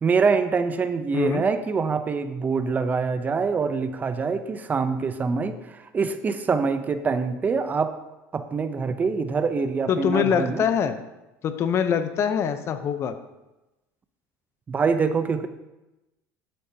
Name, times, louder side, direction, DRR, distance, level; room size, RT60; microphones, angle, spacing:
voice 1, 0.0-7.9 8.3-10.7 14.7-15.5, right 5 dB, 25° right, 10 dB, 0.6 m, -25 dB
voice 2, 9.9-11.0 11.4-13.1, left 7 dB, 40° left, 10 dB, 0.7 m, -24 dB
9.9 x 8.8 x 2.8 m, 1.0 s
supercardioid pair, 120°, 7 cm